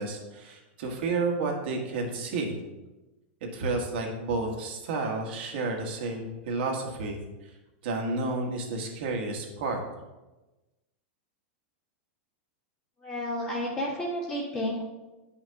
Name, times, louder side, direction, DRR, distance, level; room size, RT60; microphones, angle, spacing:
voice 1, 0.0-2.5 3.5-7.2 7.8-9.8, right 3 dB, 60° right, 0 dB, 1.6 m, -31 dB
voice 2, 13.0-14.8, equal, 20° left, -8 dB, 1.6 m, -31 dB
9.5 x 5.9 x 2.8 m, 1.1 s
supercardioid pair, 155°, 6 cm